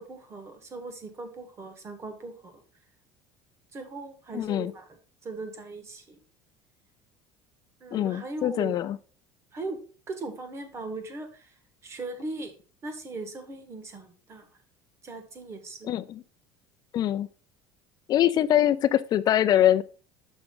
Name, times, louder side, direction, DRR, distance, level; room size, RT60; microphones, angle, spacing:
voice 1, 0.0-2.6 3.7-6.2 7.8-8.8 9.5-9.8 10.1-11.5 11.8-12.5 12.8-14.5 15.0-15.9, right 3 dB, 25° right, 1.5 m, -39 dB
voice 2, 4.3-4.7 7.9-9.0 15.9-16.2 16.9-17.3 18.1-19.8, left 11 dB, 40° left, 0.5 m, -23 dB
6.4 x 6.0 x 3.8 m
cardioid pair, 135°, 10 cm